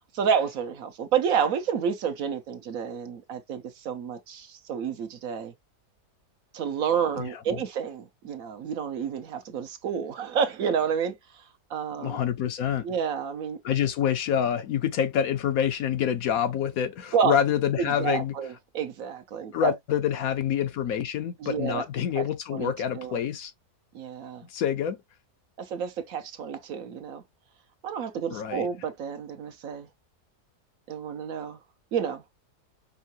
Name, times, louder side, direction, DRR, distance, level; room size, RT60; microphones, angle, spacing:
voice 1, 0.1-5.5 6.5-11.4 11.7-12.2 12.8-13.6 17.1-17.3 17.8-19.7 21.4-21.8 22.1-22.3 22.5-23.2 23.9-24.4 25.6-27.2 27.8-29.9 30.9-31.6 31.9-32.2, right 7 dB, 65° right, 1.1 m, -29 dB
voice 2, 7.2-7.6 12.0-12.9 13.6-18.3 19.5-23.5 24.5-25.0 28.3-28.7, left 9 dB, 70° left, 1.1 m, -27 dB
5.6 x 2.5 x 2.8 m
omnidirectional pair, 1.7 m